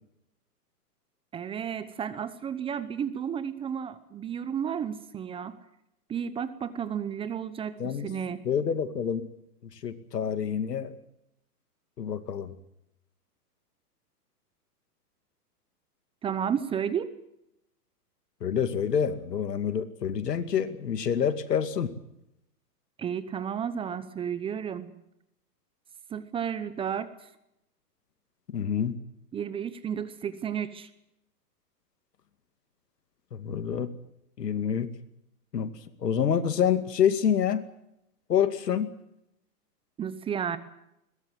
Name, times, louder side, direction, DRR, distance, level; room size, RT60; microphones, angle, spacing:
voice 1, 1.3-5.6 6.1-8.4 16.2-17.1 23.0-24.9 26.1-27.3 29.3-30.9 40.0-40.6, right 8 dB, 10° right, 14 dB, 0.8 m, -32 dB
voice 2, 7.8-8.1 8.4-9.3 9.8-10.9 12.0-12.5 18.4-21.9 28.5-29.0 33.3-33.9 34.4-34.9 35.5-35.7 36.0-37.6 38.3-38.9, left 8 dB, 85° left, 10 dB, 2.4 m, -27 dB
22.0 x 20.0 x 7.7 m, 0.82 s
hypercardioid pair, 140°, 47 cm